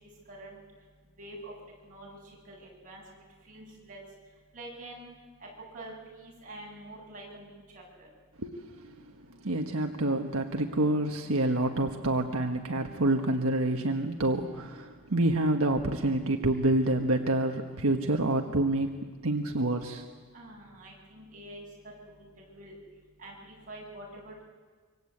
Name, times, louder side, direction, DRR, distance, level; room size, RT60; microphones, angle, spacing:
voice 1, 0.3-0.6 1.2-1.5 1.9-4.0 4.5-5.1 5.7-8.1 20.3-21.7 22.1-22.7 23.2-24.4, right 1 dB, 40° right, -3 dB, 7.8 m, -46 dB
voice 2, 8.4-9.1 9.4-20.0, right 2 dB, 75° right, 3 dB, 1.5 m, -28 dB
26.0 x 24.5 x 8.7 m, 1.5 s
head